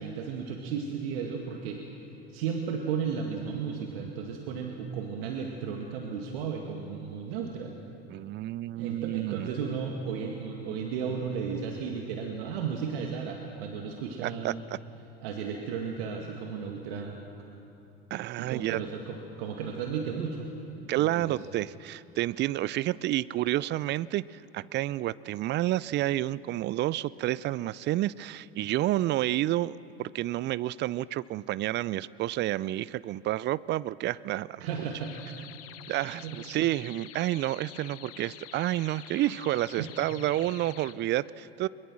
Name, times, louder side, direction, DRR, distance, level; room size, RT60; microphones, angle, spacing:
voice 1, 0.0-1.8 2.3-7.7 8.8-14.6 15.2-17.2 18.4-21.4 34.6-35.1 36.2-36.6 39.8-39.9, right 6 dB, 65° right, 2 dB, 2.0 m, -34 dB
voice 2, 8.1-9.5 14.2-14.5 18.1-18.8 20.9-24.2 24.5-34.7 35.9-41.7, right 15 dB, 35° right, 20 dB, 0.5 m, -30 dB
sound 1, 35.0-40.9, left 13 dB, 45° left, 1.2 m, -47 dB
22.5 x 22.0 x 6.2 m, 2.9 s
hypercardioid pair, 75°, 32 cm